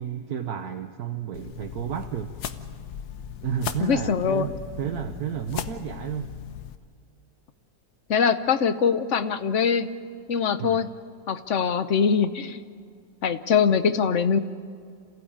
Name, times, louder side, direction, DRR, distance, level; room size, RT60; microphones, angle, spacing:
voice 1, 0.0-2.3 3.4-6.3 10.6-10.8, right 9 dB, 70° right, 4 dB, 1.4 m, -31 dB
sound 1, 1.3-6.8, left 8 dB, 75° left, 1.5 m, -37 dB
voice 2, 3.8-4.5 8.1-9.9 10.3-10.9 11.3-12.6 13.2-14.4, left 6 dB, 55° left, 12 dB, 1.1 m, -23 dB
28.0 x 16.0 x 8.8 m, 2.3 s
omnidirectional pair, 1.7 m